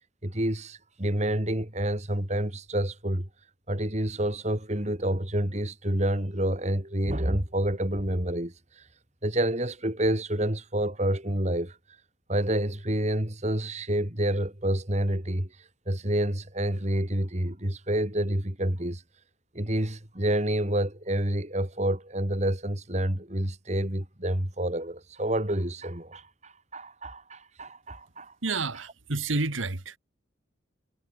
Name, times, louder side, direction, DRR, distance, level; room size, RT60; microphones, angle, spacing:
voice 1, 0.2-3.3 3.7-8.9 9.2-11.8 12.3-19.0 19.5-28.3, right 1 dB, 35° right, 2.9 m, -28 dB
voice 2, 28.4-30.0, right 3 dB, 80° right, 2.0 m, -29 dB
head